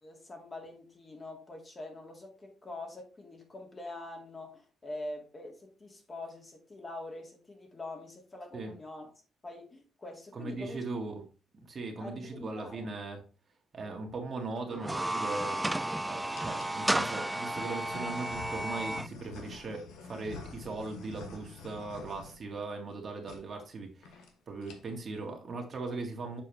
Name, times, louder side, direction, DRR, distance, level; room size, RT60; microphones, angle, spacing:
voice 1, 0.0-9.1 9.4-10.8 12.0-12.9, left 2 dB, 30° left, 2.2 m, -44 dB
voice 2, 10.3-11.2 11.7-13.2 13.7-15.6 16.0-24.2 24.5-26.4, right 3 dB, 45° right, 1.8 m, -39 dB
sound 1, 14.2-14.6 15.3-15.9 16.3-16.8 17.5-23.0 23.2-23.4 23.7-23.8 24.0-24.3 24.6-25.1, left 5 dB, 90° left, 1.2 m, -48 dB
sound 2, 14.7-19.1, right 1 dB, 10° right, 0.3 m, -33 dB
7.2 x 4.5 x 3.3 m
cardioid pair, 90°, 0 cm